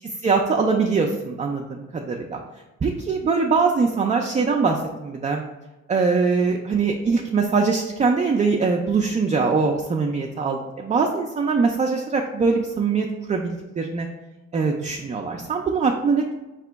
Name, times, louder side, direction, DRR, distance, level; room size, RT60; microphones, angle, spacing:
voice 1, 0.2-2.4 2.8-5.4 5.9-14.1 14.5-16.3, right 4 dB, 25° right, 1 dB, 0.4 m, -22 dB
4.1 x 2.9 x 3.4 m, 1.1 s
cardioid pair, 90°, 30 cm